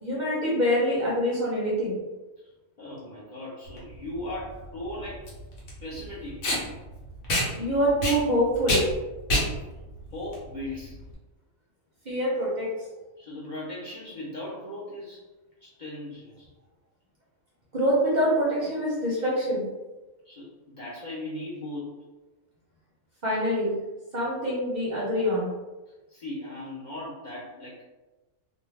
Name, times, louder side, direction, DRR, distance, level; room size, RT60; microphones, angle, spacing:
voice 1, 0.0-2.0 7.5-8.8 12.0-12.7 17.7-19.7 23.2-23.7 24.1-25.5, equal, 45° right, -6 dB, 0.7 m, -25 dB
voice 2, 2.8-5.3 5.8-6.5 10.1-11.0 13.2-15.3 15.6-16.5 20.2-22.0 26.1-27.8, left 1 dB, 45° left, -8 dB, 0.7 m, -38 dB
Packing tape duct tape, 3.7-11.1, equal, 70° left, 1.1 m, -29 dB
2.5 x 2.2 x 3.1 m, 1.1 s
omnidirectional pair, 1.4 m